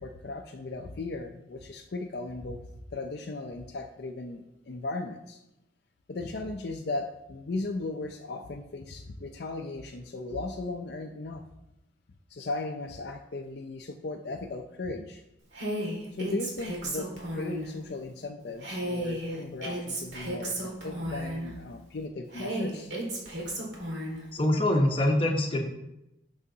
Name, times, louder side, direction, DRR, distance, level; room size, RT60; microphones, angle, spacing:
voice 1, 0.0-2.6 2.9-5.4 6.1-11.4 12.3-15.2 16.1-22.9, left 2 dB, 55° left, 3 dB, 0.5 m, -36 dB
Female speech woman speaking, 15.5-17.7 18.6-21.5 22.3-24.2, right 1 dB, 65° right, 1.8 m, -34 dB
voice 2, 24.3-25.6, left 1 dB, 30° left, 1 dB, 0.9 m, -24 dB
9.7 x 6.3 x 2.8 m, 0.89 s
head